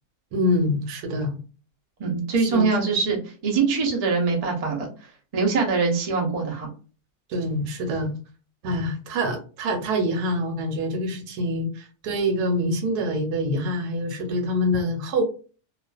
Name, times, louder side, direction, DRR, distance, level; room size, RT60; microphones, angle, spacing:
voice 1, 0.3-1.4 2.4-3.0 7.3-8.1 8.6-15.2, equal, 80° right, 5 dB, 1.2 m, -26 dB
voice 2, 2.0-4.9 5.3-6.7, right 4 dB, 60° right, 0 dB, 0.4 m, -23 dB
2.4 x 2.4 x 2.2 m, 0.36 s
omnidirectional pair, 1.7 m